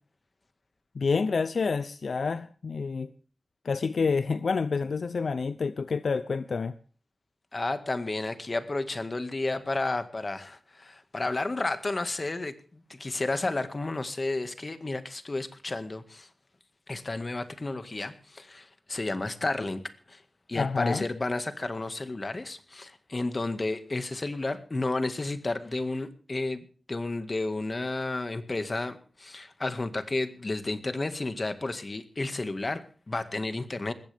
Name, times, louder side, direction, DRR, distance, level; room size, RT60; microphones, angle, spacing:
voice 1, 0.9-3.1 3.6-6.7 20.5-21.0, left 4 dB, 75° left, 0.6 m, -28 dB
voice 2, 7.5-16.3 16.9-20.2 20.5-33.9, left 2 dB, 40° left, 1.9 m, -32 dB
20.5 x 16.0 x 3.5 m
wide cardioid pair, 75°, 0 cm